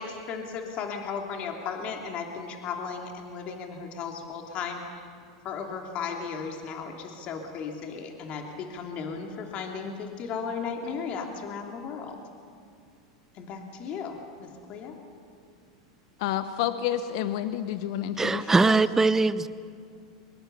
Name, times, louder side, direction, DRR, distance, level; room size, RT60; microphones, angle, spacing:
voice 1, 0.0-4.8 5.4-12.2 13.4-14.9, left 5 dB, 45° left, 2 dB, 2.8 m, -35 dB
voice 2, 16.2-18.8, left 11 dB, 65° left, 11 dB, 1.0 m, -30 dB
voice 3, 18.2-19.5, right 3 dB, 15° right, 15 dB, 0.8 m, -21 dB
23.5 x 22.5 x 6.9 m, 2.2 s
hypercardioid pair, 100°, 3 cm